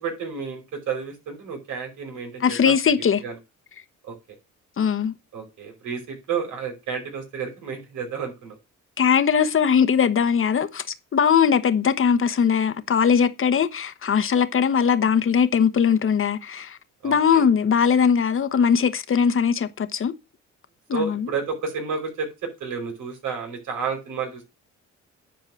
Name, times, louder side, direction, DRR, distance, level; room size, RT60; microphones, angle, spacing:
voice 1, 0.0-2.7 3.2-3.4 4.0-4.1 5.3-8.6 17.0-17.5 20.9-24.4, right 6 dB, 80° right, 5.1 m, -31 dB
voice 2, 2.4-3.2 4.8-5.1 9.0-10.8 11.1-16.8 17.0-20.1 20.9-21.3, left 7 dB, 45° left, 1.1 m, -20 dB
10.5 x 4.8 x 6.3 m
cardioid pair, 90°, 30 cm